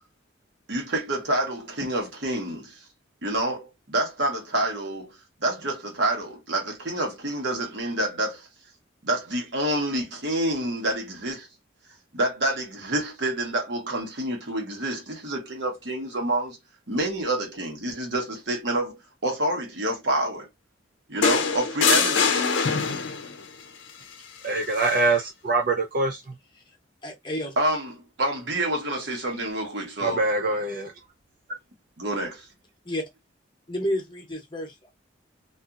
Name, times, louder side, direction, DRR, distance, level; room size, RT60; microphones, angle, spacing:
voice 1, 0.7-2.8 3.2-5.1 5.4-8.5 9.0-11.5 12.1-16.6 16.9-20.5 21.1-22.4 27.6-30.2 32.0-32.4, right 1 dB, 65° right, 1.1 m, -28 dB
sound 1, 21.2-23.4 24.8-25.0, left 5 dB, 80° left, 0.6 m, -23 dB
voice 2, 24.4-26.2 30.0-30.9, right 3 dB, 50° right, 0.4 m, -24 dB
voice 3, 27.0-27.5 32.8-33.0 33.7-34.9, equal, 25° left, 0.8 m, -30 dB
2.7 x 2.5 x 2.4 m
head